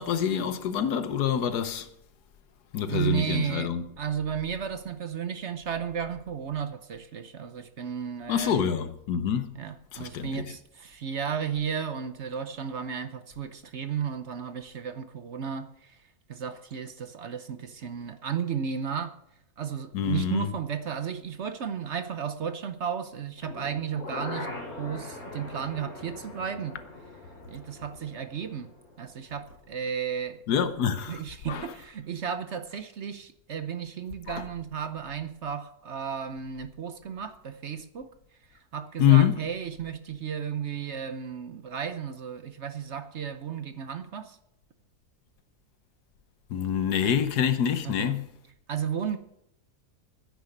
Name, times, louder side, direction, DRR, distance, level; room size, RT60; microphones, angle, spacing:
voice 1, 0.0-1.9 2.7-3.9 8.3-9.5 9.9-10.5 19.9-20.5 30.5-31.2 31.5-31.7 34.3-34.4 39.0-39.4 46.5-48.3, left 9 dB, 80° left, 1.5 m, -26 dB
voice 2, 2.9-8.7 9.5-16.0 16.3-19.1 19.6-24.5 24.8-26.8 27.5-28.7 29.0-30.4 31.1-38.1 38.7-44.4 47.8-48.1 48.7-49.2, right 7 dB, 55° right, 0.9 m, -33 dB
sound 1, 23.4-29.4 29.7-29.8, left 2 dB, 65° left, 3.1 m, -41 dB
9.9 x 9.4 x 7.8 m
omnidirectional pair, 1.7 m